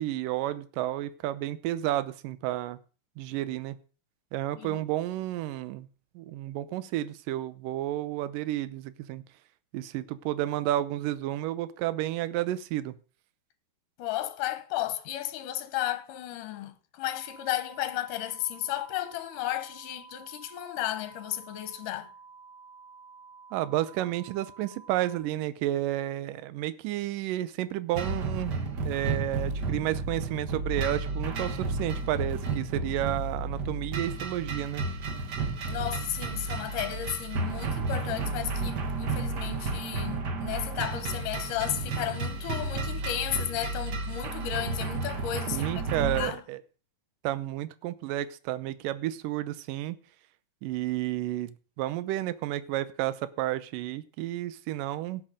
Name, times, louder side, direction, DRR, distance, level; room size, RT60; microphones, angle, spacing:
voice 1, 0.0-2.8 3.2-3.8 4.3-5.9 6.2-9.2 9.7-13.0 23.5-28.5 28.8-34.8 45.5-46.6 47.2-50.0 50.6-55.2, right 14 dB, 80° right, 2.4 m, -31 dB
voice 2, 14.0-22.1 35.7-46.4, left 13 dB, 75° left, 2.6 m, -34 dB
sound 1, 17.1-25.2, right 5 dB, 60° left, 3.8 m, -51 dB
sound 2, 27.9-46.3, right 3 dB, 60° right, 1.1 m, -32 dB
17.5 x 7.9 x 5.0 m
omnidirectional pair, 3.9 m